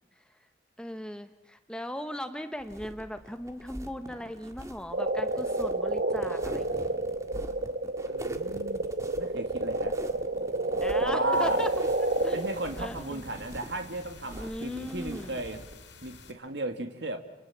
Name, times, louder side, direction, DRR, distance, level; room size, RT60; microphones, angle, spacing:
voice 1, 0.8-7.0 10.8-11.7 12.0-13.2 14.4-15.4, equal, 5° left, 8 dB, 1.0 m, -38 dB
sound 1, 2.6-15.7, right 1 dB, 15° right, 1.8 m, -45 dB
sound 2, 4.9-12.7, right 2 dB, 60° right, 1.5 m, -29 dB
voice 2, 8.1-8.8 9.2-9.9 11.0-11.6 12.3-15.6 16.0-17.2, right 1 dB, 75° right, 6 dB, 1.9 m, -35 dB
sound 3, 11.3-16.3, left 4 dB, 85° left, 4.2 m, -51 dB
28.5 x 28.0 x 7.3 m, 0.94 s
head